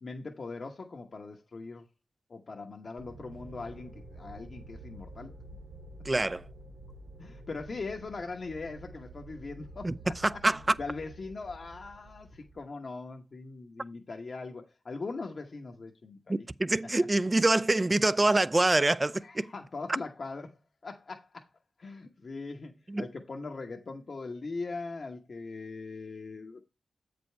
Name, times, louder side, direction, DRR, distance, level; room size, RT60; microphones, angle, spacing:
voice 1, 0.0-1.9 2.3-5.3 7.2-9.9 10.3-10.4 10.8-16.5 17.0-17.1 19.2-21.5 21.8-26.6, left 3 dB, 60° left, 1.1 m, -40 dB
sound 1, 3.0-12.6, right 1 dB, 85° right, 0.9 m, -49 dB
voice 2, 6.0-6.4 9.8-9.9 10.2-10.6 16.3-19.5 22.9-23.1, right 2 dB, 30° right, 0.4 m, -25 dB
7.8 x 5.2 x 4.5 m
cardioid pair, 45°, 0 cm